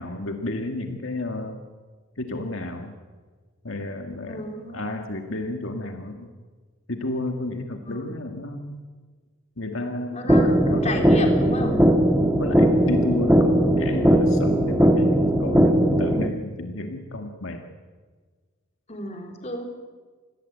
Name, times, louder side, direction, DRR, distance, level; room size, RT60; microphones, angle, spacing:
voice 1, 0.0-1.6 2.2-3.0 3.6-6.3 6.9-8.9 9.6-11.9 12.4-17.6, left 2 dB, 65° left, 4 dB, 2.0 m, -31 dB
voice 2, 4.3-4.8 7.8-8.1 10.1-11.8 18.9-19.7, left 1 dB, 30° left, 3 dB, 4.0 m, -32 dB
sound 1, 10.3-16.3, equal, 10° right, 1.6 m, -19 dB
27.5 x 20.5 x 8.2 m, 1.5 s
head